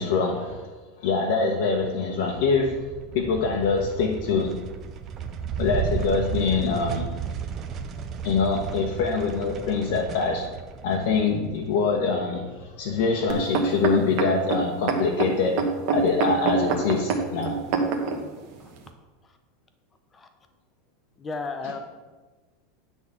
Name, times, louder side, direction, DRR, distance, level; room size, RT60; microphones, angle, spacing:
voice 1, 0.0-4.6 5.6-7.1 8.2-10.5 10.8-15.6 15.9-17.6, left 4 dB, 60° left, 0 dB, 1.0 m, -24 dB
sound 1, 2.4-12.9, right 7 dB, 25° right, 0.6 m, -34 dB
sound 2, 13.3-18.2 18.9-19.0, right 5 dB, 45° right, 1.1 m, -25 dB
voice 2, 21.2-21.8, left 3 dB, 15° left, 7 dB, 0.7 m, -33 dB
9.8 x 4.1 x 7.1 m, 1.3 s
supercardioid pair, 175°, 0 cm